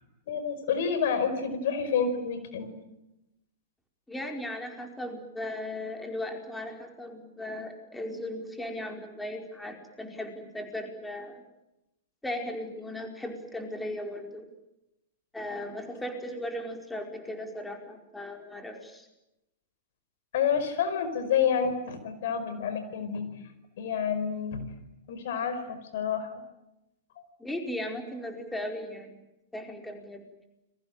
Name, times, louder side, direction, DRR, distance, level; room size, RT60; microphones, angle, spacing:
voice 1, 0.3-2.7 20.3-23.2 23.8-24.7 25.1-26.4, left 7 dB, 60° left, 10 dB, 4.9 m, -29 dB
voice 2, 4.1-11.4 12.2-14.5 15.3-19.1 27.4-29.2 29.5-30.2, left 1 dB, 5° left, 4 dB, 4.9 m, -37 dB
30.0 x 22.5 x 9.0 m, 0.92 s
figure-of-eight pair, 105°, 0 cm